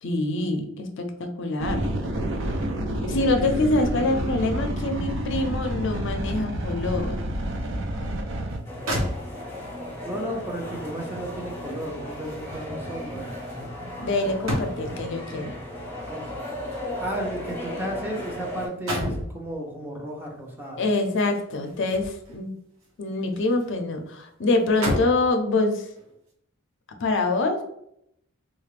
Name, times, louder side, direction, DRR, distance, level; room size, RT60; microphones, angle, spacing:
voice 1, 0.0-1.9 3.1-7.2 14.0-15.6 20.8-22.5 23.0-25.9 27.0-27.6, left 2 dB, 60° left, 4 dB, 0.5 m, -25 dB
sound 1, 1.6-8.6, right 1 dB, 60° right, 0.6 m, -29 dB
sound 2, 8.5-8.6 8.9-9.7 11.1-15.1 16.2-18.3 18.6-19.3 20.8-22.4 22.8-23.8 24.1-24.2 24.6-25.3 26.0-26.1, equal, 85° right, 1.2 m, -33 dB
sound 3, 8.6-18.7, left 1 dB, 10° left, 1.1 m, -36 dB
voice 2, 10.0-13.4 16.1-16.3 17.0-20.8, right 1 dB, 10° right, -1 dB, 0.7 m, -33 dB
3.8 x 2.4 x 3.2 m, 0.74 s
head